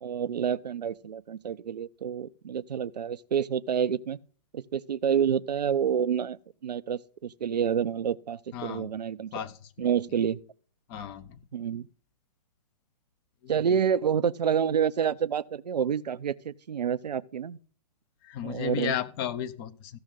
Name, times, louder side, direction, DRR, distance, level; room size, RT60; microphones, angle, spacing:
voice 1, 0.0-4.2 4.5-9.4 9.8-10.4 11.5-11.9 13.5-17.6 18.4-18.9, right 8 dB, 80° right, 0.6 m, -28 dB
voice 2, 8.5-8.9 9.3-9.9 10.9-11.4 13.4-13.7 18.2-20.0, left 9 dB, 35° left, 1.0 m, -35 dB
15.0 x 6.3 x 3.7 m
hypercardioid pair, 125°, 21 cm